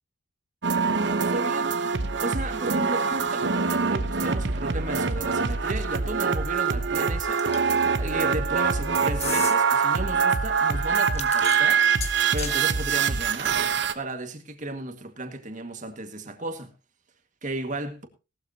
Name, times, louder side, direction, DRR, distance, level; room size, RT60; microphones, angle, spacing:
sound 1, 0.6-13.9, right 5 dB, 55° right, 1.0 m, -24 dB
voice 1, 0.9-1.8 2.2-11.8 12.3-13.6 14.0-16.7 17.4-18.1, right 2 dB, 40° right, 1.9 m, -34 dB
sound 2, 7.4-7.8 9.1-9.6 11.0-12.6, left 8 dB, 30° left, 1.4 m, -34 dB
18.0 x 12.0 x 2.9 m
head